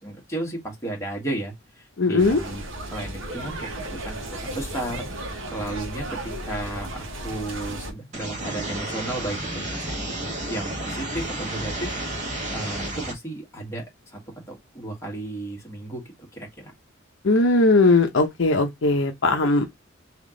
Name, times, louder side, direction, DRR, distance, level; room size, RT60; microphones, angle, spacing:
voice 1, 0.0-2.6 2.9-5.1 5.5-11.9 12.5-14.2 14.5-16.0 16.3-16.7, right 1 dB, 15° left, 1.5 m, -34 dB
voice 2, 2.0-2.4 17.2-19.7, left 2 dB, 60° left, 0.7 m, -19 dB
sound 1, 2.2-7.9, right 1 dB, 70° right, 1.2 m, -34 dB
sound 2, 8.1-13.1, right 1 dB, 35° right, 1.3 m, -31 dB
3.5 x 2.9 x 3.7 m
head